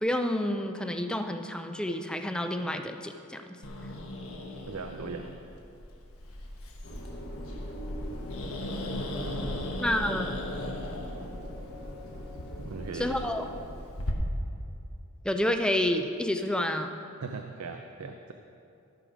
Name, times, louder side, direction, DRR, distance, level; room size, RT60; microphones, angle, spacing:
voice 1, 0.0-3.4 9.8-10.3 12.9-13.5 15.2-16.9, left 1 dB, 5° left, 6 dB, 0.4 m, -29 dB
Growling, 3.6-14.1, left 1 dB, 70° left, 1.2 m, -38 dB
voice 2, 4.7-5.4 12.6-13.3 17.2-18.3, right 4 dB, 85° right, 5 dB, 0.5 m, -39 dB
sound 1, 6.8-13.6, equal, 55° left, 1.7 m, -42 dB
13.5 x 6.5 x 5.0 m, 2.6 s
head